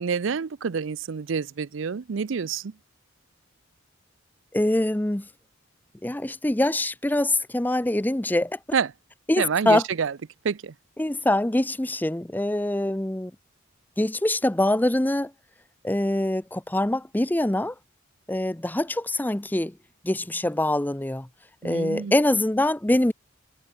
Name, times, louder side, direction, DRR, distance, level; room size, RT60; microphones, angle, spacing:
voice 1, 0.0-2.7 8.7-8.9 9.4-10.2 10.4-10.7 21.6-22.1, right 6 dB, 65° right, 0.5 m, -27 dB
voice 2, 4.5-5.2 6.0-8.6 9.3-9.8 11.0-13.3 14.0-15.3 15.8-17.7 18.3-19.7 20.0-21.3 21.6-23.1, left 1 dB, 10° left, 0.6 m, -24 dB
head